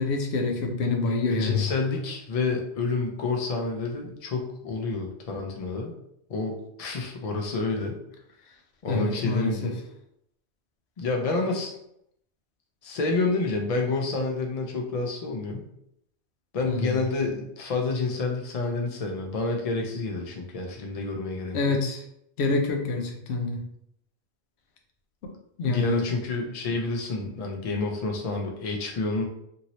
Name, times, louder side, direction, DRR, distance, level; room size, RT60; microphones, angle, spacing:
voice 1, 0.0-1.7 8.9-9.7 16.6-17.0 21.5-22.0 22.4-23.6 25.6-26.1, left 3 dB, 70° left, 3 dB, 0.8 m, -26 dB
voice 2, 1.3-5.9 6.3-8.0 8.8-9.8 11.0-11.7 12.8-15.6 16.5-21.7 25.6-29.3, left 3 dB, 45° left, 1 dB, 0.5 m, -29 dB
2.7 x 2.7 x 2.9 m, 0.75 s
omnidirectional pair, 1.2 m